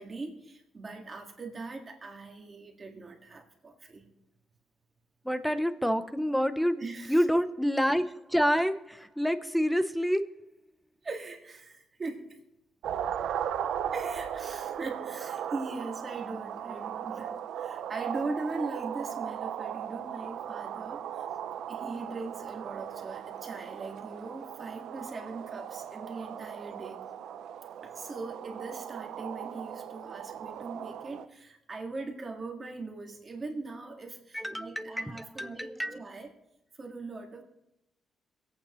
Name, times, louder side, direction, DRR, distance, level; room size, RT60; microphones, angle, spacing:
voice 1, 0.0-4.0 6.8-7.3 11.0-12.4 13.9-21.3 21.7-27.0 27.8-36.3 36.8-37.4, right 3 dB, 30° right, 1 dB, 1.8 m, -40 dB
voice 2, 5.2-10.2 34.3-36.0, equal, ahead, 11 dB, 0.6 m, -28 dB
sound 1, 12.8-31.3, right 9 dB, 90° right, 0.5 m, -37 dB
25.5 x 8.8 x 3.1 m, 0.85 s
cardioid pair, 155°, 0 cm